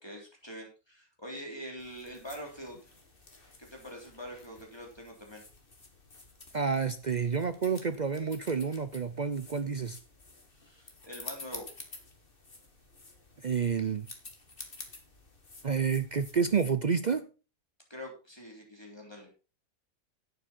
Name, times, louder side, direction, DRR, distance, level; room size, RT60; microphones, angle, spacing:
voice 1, 0.0-2.9 3.6-5.4 10.5-11.7 17.9-19.3, equal, 15° left, 3.5 m, -44 dB
sound 1, 1.8-16.7, left 3 dB, 40° left, 2.3 m, -51 dB
voice 2, 6.5-10.0 13.4-14.1 15.6-17.2, right 6 dB, 45° right, 0.6 m, -29 dB
11.0 x 9.1 x 4.3 m
omnidirectional pair, 1.5 m